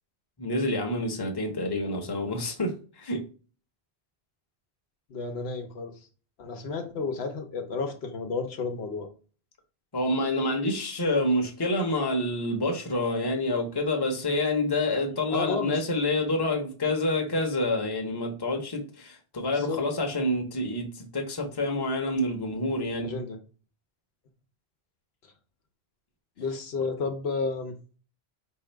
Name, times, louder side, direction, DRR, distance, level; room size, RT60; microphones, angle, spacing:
voice 1, 0.4-3.2 9.9-23.1, left 1 dB, 25° left, 0.8 m, -28 dB
voice 2, 5.1-6.0 6.4-9.1 15.3-15.8 19.5-19.8 23.0-23.4 26.4-27.7, left 4 dB, 80° left, 1.0 m, -31 dB
4.8 x 2.8 x 3.3 m
omnidirectional pair, 1.1 m